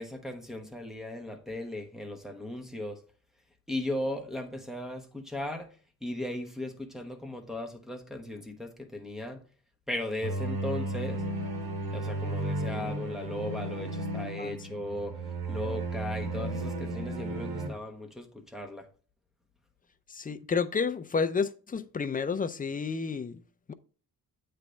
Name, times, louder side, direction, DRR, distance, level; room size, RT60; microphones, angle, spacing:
voice 1, 0.0-3.0 3.7-5.7 6.0-9.4 9.9-11.2 11.9-15.2 15.5-18.9, left 1 dB, ahead, 1.0 m, -37 dB
sound 1, 10.2-17.7, right 2 dB, 90° right, 1.8 m, -34 dB
voice 2, 20.1-23.4 23.7-23.8, left 5 dB, 25° left, 0.4 m, -30 dB
8.2 x 3.4 x 5.1 m
wide cardioid pair, 135°, 35 cm